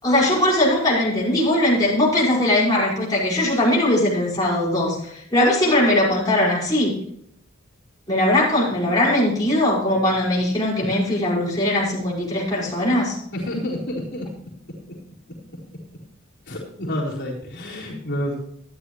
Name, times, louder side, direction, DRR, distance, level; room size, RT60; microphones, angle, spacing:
voice 1, 0.0-5.0 5.3-7.0 8.1-13.2, left 1 dB, 20° left, -7 dB, 5.7 m, -20 dB
voice 2, 13.3-14.3 16.5-18.3, left 1 dB, 55° left, -6 dB, 4.2 m, -28 dB
13.5 x 12.0 x 3.2 m, 0.70 s
head